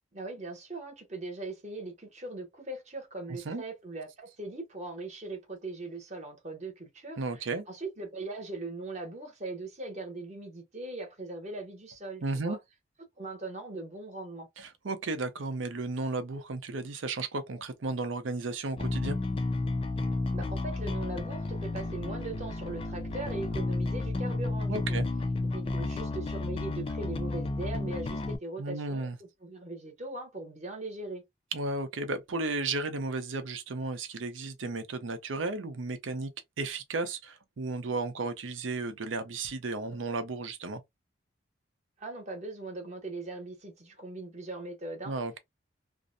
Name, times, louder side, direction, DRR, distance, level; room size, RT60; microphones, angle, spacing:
voice 1, 0.1-7.4 7.7-12.6 13.2-14.5 20.3-25.0 25.5-29.1 29.4-31.2 42.0-45.1, right 2 dB, 35° right, 0.9 m, -40 dB
voice 2, 3.3-3.6 7.2-7.7 12.2-12.6 14.6-19.2 24.7-25.1 28.6-29.2 31.5-36.3 36.6-40.8 45.1-45.4, right 3 dB, 90° right, 0.6 m, -34 dB
Bass guitar, 18.8-28.4, left 2 dB, 30° left, 0.3 m, -32 dB
2.5 x 2.0 x 2.5 m
head